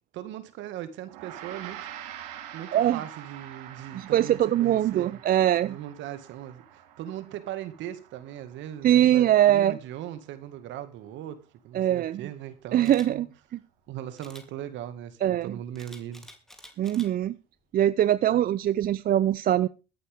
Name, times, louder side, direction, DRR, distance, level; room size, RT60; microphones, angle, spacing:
voice 1, 0.1-1.8 2.5-5.2 5.6-11.4 11.6-13.3 13.9-16.3, right 11 dB, 65° right, 2.0 m, -39 dB
Gong, 1.1-10.6, right 11 dB, 85° right, 2.1 m, -46 dB
voice 2, 3.9-5.8 8.8-9.8 11.7-12.2 12.7-13.3 15.2-15.5 16.8-17.4 17.7-19.7, right 12 dB, 45° right, 0.6 m, -22 dB
Camera, 12.8-13.1 14.2-14.5 15.8-17.1 17.6-17.8, equal, ahead, 3.1 m, -49 dB
23.5 x 8.7 x 3.6 m
supercardioid pair, 80°, 20 cm